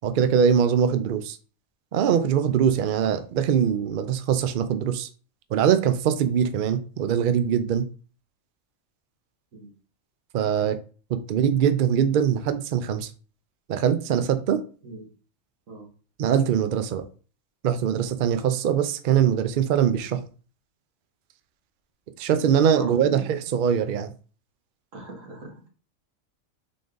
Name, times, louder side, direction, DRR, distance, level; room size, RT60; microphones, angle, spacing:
voice 1, 0.0-1.4 1.9-5.1 5.5-7.8 10.3-10.8 11.1-13.1 13.7-14.6 16.2-17.0 17.6-20.2 22.2-24.1, right 8 dB, 85° right, 10 dB, 0.4 m, -22 dB
voice 2, 22.8-23.3 24.9-25.7, right 2 dB, 65° right, 0 dB, 1.7 m, -39 dB
3.9 x 3.3 x 3.8 m, 0.38 s
omnidirectional pair, 1.4 m